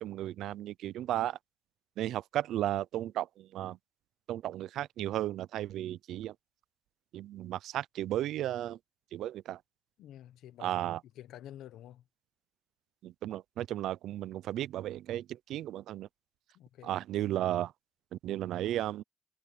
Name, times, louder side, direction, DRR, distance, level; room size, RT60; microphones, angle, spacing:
voice 1, 0.0-1.4 2.0-3.8 4.3-6.3 7.1-8.8 9.1-9.6 10.6-11.0 13.0-16.1 16.8-17.7 18.1-19.0, right 13 dB, 85° right, 0.5 m, -34 dB
voice 2, 10.0-10.9 11.1-12.0 16.5-17.3, left 12 dB, 90° left, 1.0 m, -50 dB
cardioid pair, 130°, 0 cm